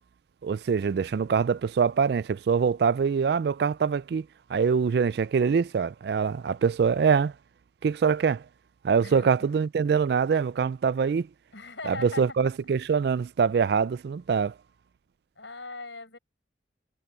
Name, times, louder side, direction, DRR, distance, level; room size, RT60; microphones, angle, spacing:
voice 1, 0.4-7.3 7.8-8.4 8.8-11.3 11.9-14.5, right 6 dB, 60° right, 0.3 m, -24 dB
voice 2, 9.0-9.3 11.5-12.4 15.4-16.2, left 3 dB, 75° left, 7.7 m, -40 dB
head